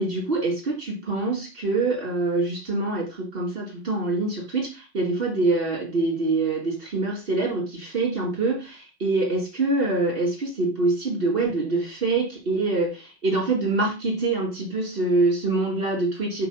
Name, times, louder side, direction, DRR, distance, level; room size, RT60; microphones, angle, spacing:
voice 1, 0.0-16.5, right 3 dB, 60° right, -2 dB, 2.6 m, -25 dB
6.0 x 3.0 x 5.6 m, 0.30 s
omnidirectional pair, 1.1 m